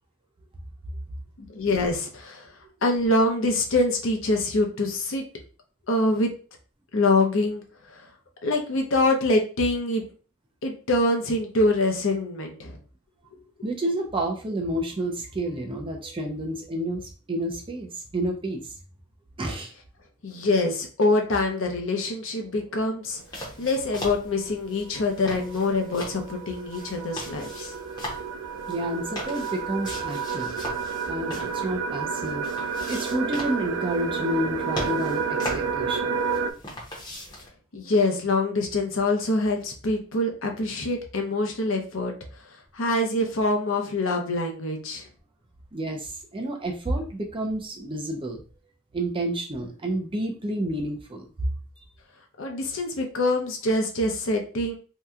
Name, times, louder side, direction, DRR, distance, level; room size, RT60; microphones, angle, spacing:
voice 1, 1.4-2.5 2.8-5.2 5.9-6.3 6.9-7.6 7.9-8.1 8.4-10.0 10.6-12.8 20.2-23.2 23.6-27.7 37.7-42.1 42.4-42.5 42.7-45.1 52.4-54.7, left 2 dB, 60° left, 3 dB, 0.7 m, -25 dB
voice 2, 13.6-18.8 19.4-19.7 28.7-30.5 31.1-32.5 32.9-36.2 45.7-48.4 48.9-51.5 51.8-51.9, right 1 dB, 25° right, 2 dB, 0.4 m, -30 dB
sound 1, 23.1-23.2 24.6-36.5, right 5 dB, 85° right, 0.4 m, -31 dB
sound 2, 23.2-37.5, equal, 20° left, 0.8 m, -40 dB
2.8 x 2.2 x 3.5 m, 0.37 s
head